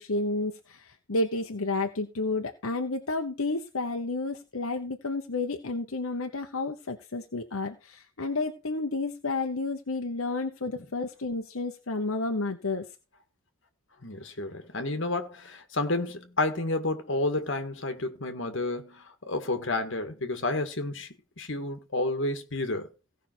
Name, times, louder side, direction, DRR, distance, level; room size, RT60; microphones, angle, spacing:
voice 1, 0.0-12.8, left 3 dB, 75° left, 1.1 m, -31 dB
voice 2, 14.0-21.1 21.4-22.9, left 2 dB, 60° left, 1.9 m, -30 dB
17.0 x 5.8 x 4.5 m
head